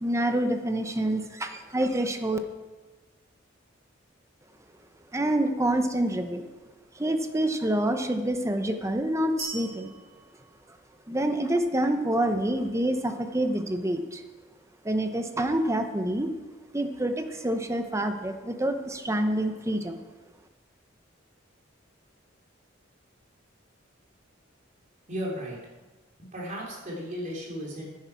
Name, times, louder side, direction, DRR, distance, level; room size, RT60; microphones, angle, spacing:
voice 1, 0.0-2.4 5.1-6.5 7.0-9.9 11.1-14.2 14.8-16.3 16.7-20.0, right 1 dB, 15° right, 7 dB, 0.8 m, -27 dB
sound 1, 9.4-11.3, right 3 dB, 80° right, 3.8 m, -40 dB
voice 2, 25.1-25.6 26.2-27.9, equal, 40° right, -3 dB, 3.2 m, -35 dB
10.5 x 10.0 x 4.7 m, 1.2 s
head